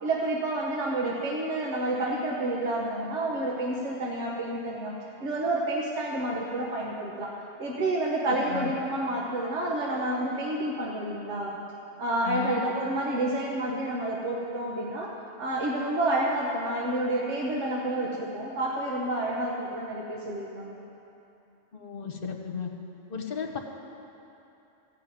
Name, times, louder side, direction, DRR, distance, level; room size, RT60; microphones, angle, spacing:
voice 1, 0.0-7.3 7.6-11.6 12.0-15.1 15.4-20.8, right 1 dB, 70° right, -3 dB, 1.3 m, -29 dB
voice 2, 8.3-8.7 12.3-12.6 21.7-22.7 23.1-23.6, left 6 dB, 50° left, 3 dB, 1.1 m, -34 dB
14.5 x 5.7 x 9.0 m, 2.9 s
omnidirectional pair, 1.3 m